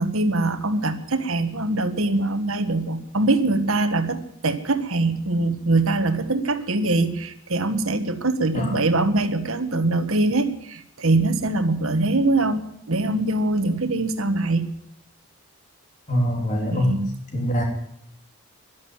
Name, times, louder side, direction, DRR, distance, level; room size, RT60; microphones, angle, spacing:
voice 1, 0.0-14.7 16.7-17.1, right 2 dB, 70° right, 9 dB, 1.5 m, -23 dB
voice 2, 16.1-17.0 17.3-17.6, equal, 35° left, 1 dB, 3.7 m, -23 dB
12.5 x 11.0 x 9.1 m, 0.72 s
head